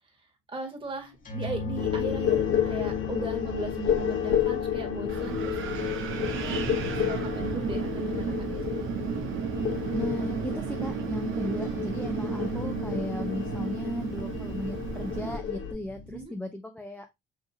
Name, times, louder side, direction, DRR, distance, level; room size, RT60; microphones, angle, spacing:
voice 1, 0.5-5.6 6.0-6.6 7.1-8.6 16.1-16.4, right 3 dB, 25° right, 2 dB, 1.9 m, -38 dB
sound 1, 1.1-16.2, left 5 dB, 45° left, 1.3 m, -39 dB
sound 2, 1.8-15.7, left 9 dB, 90° left, 1.1 m, -31 dB
Wind, 5.1-15.4, right 7 dB, 80° right, 0.9 m, -33 dB
voice 2, 9.9-17.1, left 1 dB, 5° left, 4 dB, 0.6 m, -36 dB
5.9 x 2.8 x 2.8 m, 0.20 s
cardioid pair, 90°, 20 cm